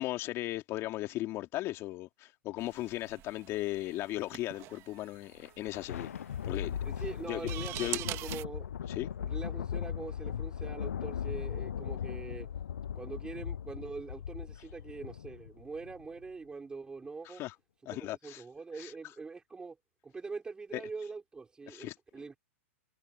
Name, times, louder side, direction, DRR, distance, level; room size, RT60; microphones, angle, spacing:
voice 1, 0.0-6.1 6.4-6.8 7.3-7.4 7.8-8.0 8.9-9.1 17.2-17.5 17.9-18.4 18.8-18.9 20.7-20.8 21.7-21.9, left 16 dB, 35° left, 2.9 m, -37 dB
sound 1, 2.6-8.4, right 17 dB, 35° right, 1.7 m, -44 dB
Thunder, 5.3-16.1, left 8 dB, 80° left, 0.5 m, -38 dB
voice 2, 6.9-8.7 9.2-12.5 12.9-17.4 17.8-19.8 20.0-22.4, right 4 dB, 10° right, 5.3 m, -43 dB
hypercardioid pair, 125°, 8 cm